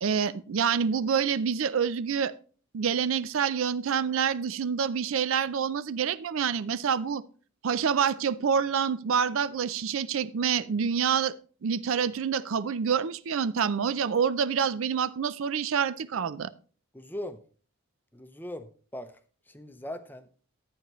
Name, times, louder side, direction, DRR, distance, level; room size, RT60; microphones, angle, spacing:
voice 1, 0.0-2.3 2.7-7.2 7.6-11.3 11.6-16.5, right 7 dB, 70° right, 16 dB, 0.4 m, -27 dB
voice 2, 16.9-17.4 18.1-19.2 19.5-20.3, left 1 dB, 10° left, 9 dB, 0.6 m, -40 dB
11.5 x 8.9 x 3.1 m, 0.41 s
head